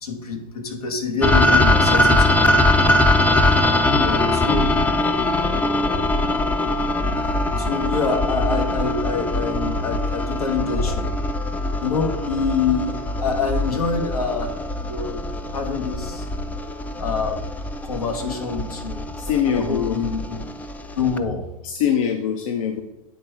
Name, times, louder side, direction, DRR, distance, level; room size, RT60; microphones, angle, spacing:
voice 1, 0.0-2.4 4.3-4.8 7.6-11.1 11.8-14.5 14.8-16.3 17.0-17.5 17.8-19.0 19.5-20.4 21.0-21.4, left 4 dB, 85° left, 4 dB, 1.2 m, -26 dB
sound 1, 1.2-21.2, left 1 dB, 10° left, 0.3 m, -21 dB
voice 2, 4.0-4.3 19.2-20.0 21.6-22.8, left 8 dB, 65° left, 5 dB, 0.7 m, -23 dB
8.4 x 3.4 x 4.6 m, 0.93 s
hypercardioid pair, 105°, 19 cm